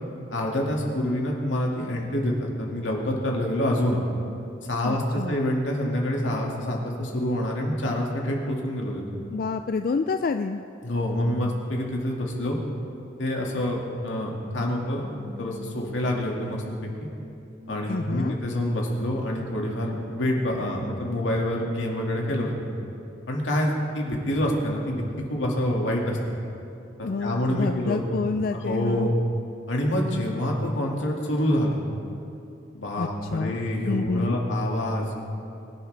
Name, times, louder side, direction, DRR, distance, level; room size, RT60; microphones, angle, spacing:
voice 1, 0.3-4.0 4.7-9.1 10.8-12.6 13.2-16.9 17.7-22.5 23.3-26.2 27.0-28.2 28.5-29.1 29.7-31.8 32.7-35.1, left 1 dB, 85° left, -1 dB, 2.1 m, -27 dB
voice 2, 4.8-5.4 9.3-10.6 17.9-18.4 27.0-29.1 33.0-34.4, left 4 dB, 50° left, 7 dB, 0.3 m, -28 dB
sound 1, 14.7-21.8 22.1-22.2, left 2 dB, 35° right, 2.4 m, -47 dB
22.5 x 10.5 x 3.4 m, 2.7 s
head